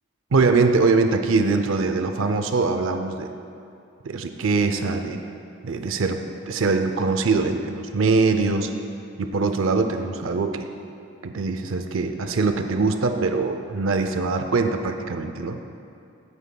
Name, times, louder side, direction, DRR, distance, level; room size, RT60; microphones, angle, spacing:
voice 1, 0.3-3.3 4.0-5.2 5.6-6.2 6.5-8.7 9.2-10.7 11.2-15.6, right 4 dB, 70° right, 7 dB, 0.5 m, -22 dB
17.5 x 8.1 x 2.3 m, 2.5 s
head